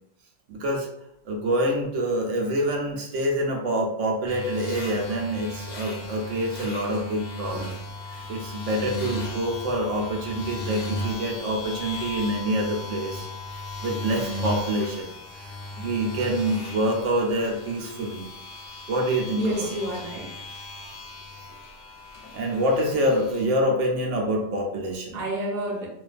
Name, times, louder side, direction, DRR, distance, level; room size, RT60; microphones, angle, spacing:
voice 1, 0.5-0.9 1.2-7.8 8.1-13.3 13.8-15.1 15.8-18.3 18.9-19.7 22.3-25.2, right 1 dB, 80° right, 0 dB, 0.9 m, -26 dB
sound 1, 4.3-23.4, left 1 dB, 60° left, 0.7 m, -36 dB
voice 2, 19.4-20.4 25.1-25.9, right 2 dB, 45° right, -3 dB, 0.6 m, -30 dB
2.4 x 2.2 x 2.4 m, 0.77 s
omnidirectional pair, 1.2 m